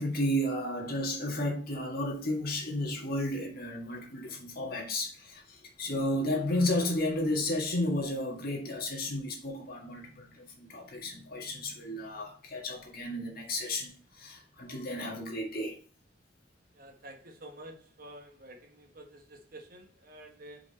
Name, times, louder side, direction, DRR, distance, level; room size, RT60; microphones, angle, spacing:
voice 1, 0.0-15.8, left 1 dB, 55° left, 1.9 m, -33 dB
voice 2, 16.7-20.6, right 1 dB, 55° right, 1.3 m, -49 dB
5.3 x 4.9 x 4.2 m
head